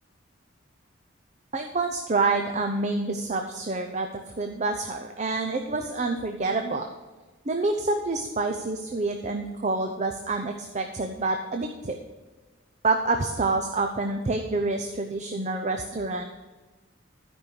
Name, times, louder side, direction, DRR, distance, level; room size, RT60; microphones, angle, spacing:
voice 1, 1.5-4.1 4.4-6.9 7.5-11.9 12.8-16.2, right 3 dB, 35° right, 4 dB, 0.6 m, -27 dB
12.5 x 5.4 x 6.3 m, 1.3 s
head